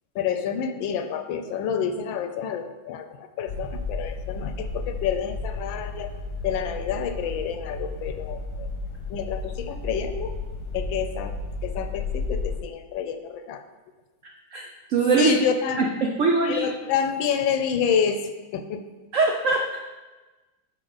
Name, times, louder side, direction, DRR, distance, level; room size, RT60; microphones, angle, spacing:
voice 1, 0.1-6.1 6.4-8.7 9.1-10.4 10.7-11.3 11.6-13.6 15.2-16.0 16.5-18.8, left 7 dB, 80° left, 8 dB, 1.3 m, -28 dB
sound 1, 3.5-12.6, left 3 dB, 60° left, 1.2 m, -33 dB
voice 2, 14.5-15.4 15.8-16.7 19.1-19.8, right 3 dB, 85° right, 1 dB, 0.6 m, -22 dB
8.4 x 4.7 x 4.0 m, 1.2 s
omnidirectional pair, 2.2 m